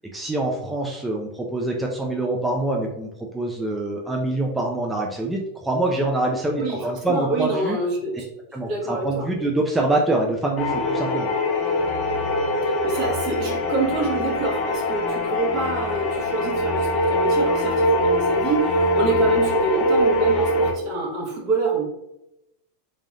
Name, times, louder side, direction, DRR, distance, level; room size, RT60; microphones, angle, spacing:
voice 1, 0.1-7.8 8.5-11.3, right 2 dB, 10° right, -1 dB, 0.4 m, -25 dB
voice 2, 6.6-8.3 8.6-9.3 12.6-21.8, right 3 dB, 50° right, -2 dB, 1.4 m, -26 dB
sound 1, 10.6-20.7, left 1 dB, 40° left, 0.7 m, -22 dB
3.5 x 3.3 x 2.6 m, 0.87 s
supercardioid pair, 130°, 0 cm